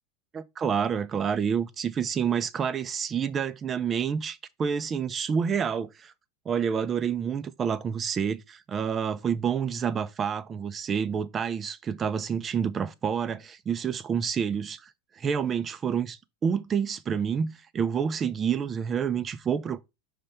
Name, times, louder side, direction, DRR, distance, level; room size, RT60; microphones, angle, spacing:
voice 1, 0.3-6.1 6.5-14.9 15.2-19.8, right 7 dB, 25° right, 0.6 m, -28 dB
5.3 x 3.4 x 5.6 m
hypercardioid pair, 110°, 0 cm